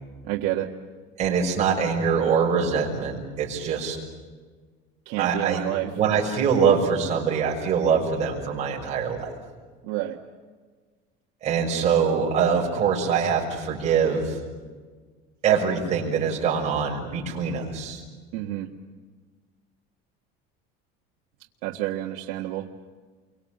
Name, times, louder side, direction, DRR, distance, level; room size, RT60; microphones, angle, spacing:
voice 1, 0.2-0.7 5.1-5.9 9.8-10.2 18.3-18.7 21.6-22.7, right 14 dB, 75° right, -1 dB, 1.7 m, -29 dB
voice 2, 1.2-4.0 5.2-9.3 11.4-14.3 15.4-18.0, right 6 dB, 30° right, -2 dB, 6.4 m, -23 dB
29.5 x 24.0 x 7.9 m, 1.5 s
cardioid pair, 170°, 21 cm